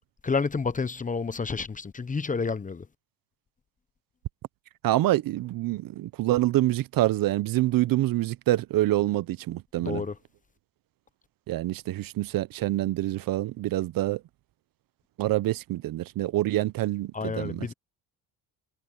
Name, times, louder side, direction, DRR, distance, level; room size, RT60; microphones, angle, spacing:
voice 1, 0.2-2.9 9.8-10.2 17.1-17.7, left 4 dB, 20° left, 1.0 m, -29 dB
voice 2, 4.8-10.0 11.5-14.2 15.2-17.7, right 16 dB, 55° right, 0.8 m, -26 dB
cardioid pair, 100°, 40 cm